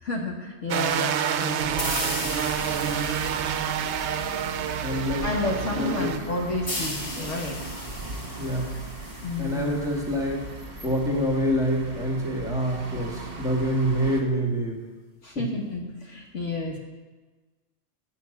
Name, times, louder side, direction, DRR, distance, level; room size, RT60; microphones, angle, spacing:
voice 1, 0.0-1.6 5.2-7.6 9.2-9.8 15.2-16.8, left 2 dB, 70° left, 0 dB, 1.7 m, -31 dB
sound 1, 0.7-6.2, right 8 dB, 65° right, 0.8 m, -28 dB
sound 2, 1.6-14.2, right 3 dB, 50° right, 1.5 m, -38 dB
sound 3, 1.8-5.2 6.7-10.2, left 2 dB, 50° left, 1.8 m, -36 dB
voice 2, 4.8-5.3 5.7-6.1 8.4-8.7 9.4-10.5 10.8-14.8 15.3-15.5, equal, 5° right, -2 dB, 1.7 m, -26 dB
9.0 x 6.7 x 7.1 m, 1.3 s
omnidirectional pair, 1.3 m